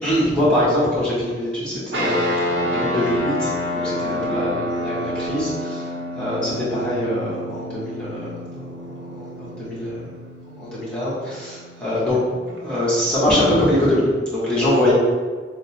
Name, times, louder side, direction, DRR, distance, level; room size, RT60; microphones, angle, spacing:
voice 1, 0.0-8.8 9.1-10.1 10.4-12.2 12.5-14.9, left 1 dB, 5° left, -11 dB, 1.2 m, -23 dB
sound 1, 1.9-12.6, left 1 dB, 80° right, 0.7 m, -28 dB
3.4 x 2.1 x 4.1 m, 1.5 s
head